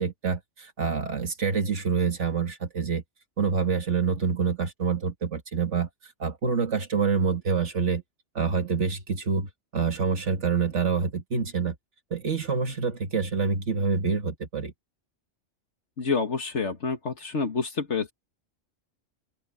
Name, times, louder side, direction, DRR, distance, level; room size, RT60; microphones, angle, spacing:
voice 1, 0.0-3.0 3.4-5.9 6.2-8.0 8.4-11.8 12.1-14.7, right 5 dB, 65° right, 2.2 m, -26 dB
voice 2, 16.0-18.1, left 4 dB, 65° left, 2.0 m, -28 dB
open air
omnidirectional pair, 1.3 m